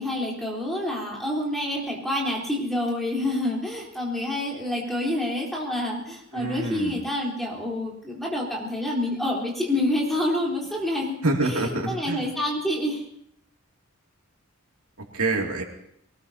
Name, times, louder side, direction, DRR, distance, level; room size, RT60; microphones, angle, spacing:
voice 1, 0.0-11.2 11.4-13.1, left 1 dB, ahead, -4 dB, 3.8 m, -28 dB
voice 2, 6.3-7.0 11.2-12.3 15.1-15.6, right 2 dB, 85° right, 1 dB, 2.6 m, -26 dB
23.5 x 19.0 x 2.9 m, 0.70 s
head